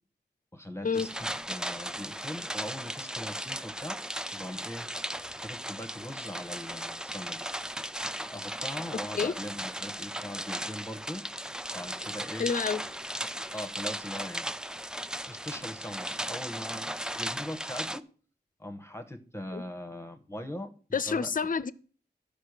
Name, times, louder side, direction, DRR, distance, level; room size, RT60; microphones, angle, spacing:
voice 1, 0.5-4.0 4.3-4.9 5.4-7.4 8.3-11.3 11.7-12.5 13.5-14.5 15.3-18.1 18.6-21.3, left 1 dB, 15° left, 0.9 m, -40 dB
sound 1, 0.9-18.0, equal, 5° right, 0.4 m, -36 dB
voice 2, 12.4-12.8 19.5-19.6 20.9-21.7, left 5 dB, 50° left, 0.5 m, -28 dB
12.0 x 5.2 x 6.6 m
wide cardioid pair, 90°, 18 cm